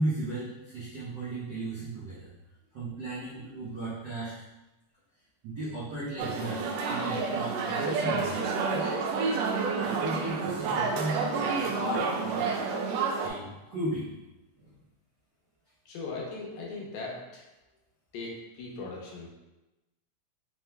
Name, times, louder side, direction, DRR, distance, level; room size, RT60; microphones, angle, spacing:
voice 1, 0.0-2.3 2.7-4.3 5.4-8.4 8.7-9.0 9.7-12.4 13.2-14.1 14.6-14.7, right 1 dB, 70° right, -11 dB, 1.0 m, -35 dB
sound 1, 6.2-13.3, right 4 dB, 85° right, 1.4 m, -29 dB
voice 2, 15.9-17.4 18.1-19.3, left 3 dB, 75° left, -3 dB, 1.9 m, -39 dB
5.3 x 3.0 x 2.2 m, 1.0 s
omnidirectional pair, 3.4 m